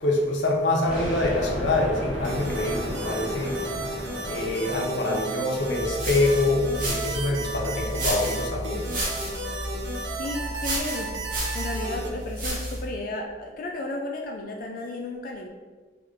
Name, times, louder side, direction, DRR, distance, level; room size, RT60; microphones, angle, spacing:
voice 1, 0.0-3.6 4.3-8.9, left 2 dB, 75° left, 0 dB, 0.8 m, -25 dB
sound 1, 0.8-5.7, equal, 5° right, 1.1 m, -34 dB
sound 2, 2.2-12.1, right 2 dB, 85° right, 0.8 m, -34 dB
sound 3, 5.6-12.9, right 1 dB, 45° right, 1.0 m, -32 dB
voice 2, 10.2-11.1 11.5-15.5, left 2 dB, 50° left, 1 dB, 0.4 m, -33 dB
3.3 x 3.3 x 3.6 m, 1.4 s
head